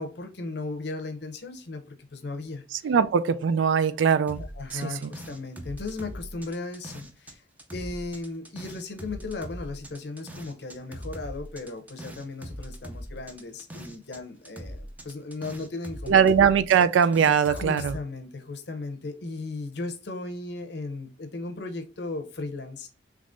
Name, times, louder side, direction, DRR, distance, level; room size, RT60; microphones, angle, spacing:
voice 1, 0.0-3.0 4.4-7.4 7.7-16.3 17.5-22.9, left 3 dB, 60° left, 0.7 m, -36 dB
voice 2, 2.8-4.4 4.7-5.1 16.1-17.9, right 7 dB, 80° right, 0.3 m, -21 dB
sound 1, 4.3-7.3 7.6-14.2 14.4-18.0, equal, 10° right, 0.4 m, -41 dB
3.5 x 3.1 x 2.5 m
head